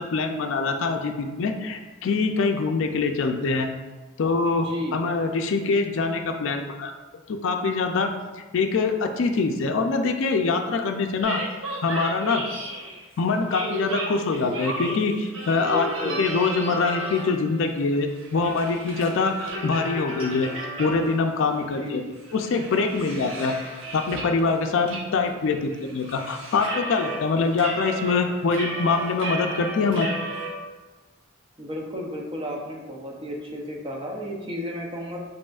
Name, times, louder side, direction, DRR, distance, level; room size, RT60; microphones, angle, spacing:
voice 1, 0.0-3.7 4.2-6.9 7.3-8.1 8.5-11.4 11.8-12.4 13.2-20.5 20.8-22.0 22.3-23.6 23.9-30.2, left 4 dB, 65° left, 4 dB, 0.4 m, -24 dB
voice 2, 4.5-5.0 15.6-16.2 21.6-22.0 31.6-35.2, left 1 dB, 25° right, -1 dB, 0.7 m, -33 dB
sound 1, 11.2-13.0 13.5-17.5 17.8-21.3 21.7-21.8 22.2-24.4 24.9-25.0 25.3-27.2 27.5-30.5, right 1 dB, 70° right, 1.0 m, -33 dB
5.1 x 4.1 x 2.4 m, 1.2 s
head